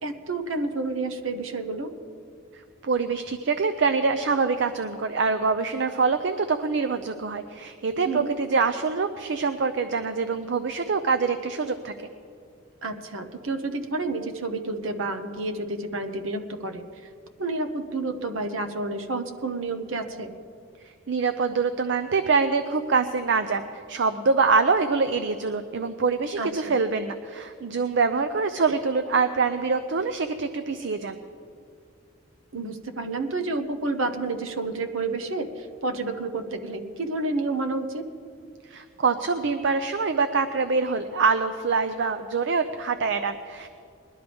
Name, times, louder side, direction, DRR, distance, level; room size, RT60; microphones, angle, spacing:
voice 1, 0.0-1.9 8.0-8.3 12.8-16.8 17.4-20.3 26.4-26.8 32.5-38.1, right 3 dB, 75° right, 7 dB, 1.0 m, -30 dB
voice 2, 2.8-11.9 21.1-31.2 38.7-43.7, right 4 dB, 60° right, 9 dB, 0.5 m, -25 dB
21.0 x 12.0 x 3.5 m, 2.5 s
head